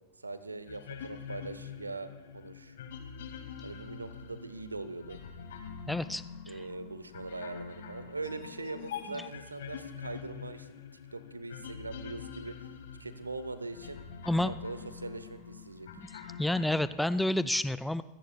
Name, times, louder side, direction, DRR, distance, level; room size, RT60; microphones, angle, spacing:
voice 1, 0.2-2.8 3.6-5.2 6.5-12.7 13.0-14.0 14.4-15.9, right 3 dB, 80° right, 12 dB, 0.9 m, -41 dB
sound 1, 0.7-17.0, left 7 dB, 60° left, 2.1 m, -45 dB
voice 2, 5.9-6.6 14.3-14.5 16.4-18.0, left 1 dB, 5° left, 15 dB, 0.4 m, -29 dB
25.5 x 16.5 x 2.3 m, 1.0 s
figure-of-eight pair, 90°, 0 cm